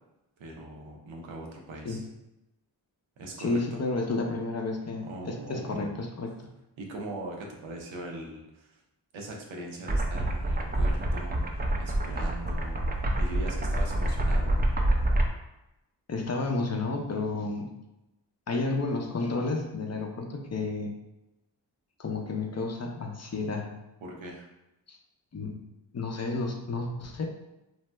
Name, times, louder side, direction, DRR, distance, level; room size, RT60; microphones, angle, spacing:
voice 1, 0.4-2.1 3.2-3.8 5.1-6.0 6.8-8.8 9.1-12.7 13.2-14.6 24.0-24.5, right 1 dB, 85° right, 0 dB, 0.7 m, -41 dB
voice 2, 3.4-6.3 16.1-17.7 18.5-21.0 22.0-23.7 24.9-25.0 25.3-25.6 25.9-27.3, left 3 dB, 35° left, 2 dB, 0.5 m, -31 dB
sound 1, 9.9-15.3, right 1 dB, 20° right, 0.4 m, -27 dB
2.7 x 2.0 x 3.2 m, 0.92 s
cardioid pair, 40°, 45 cm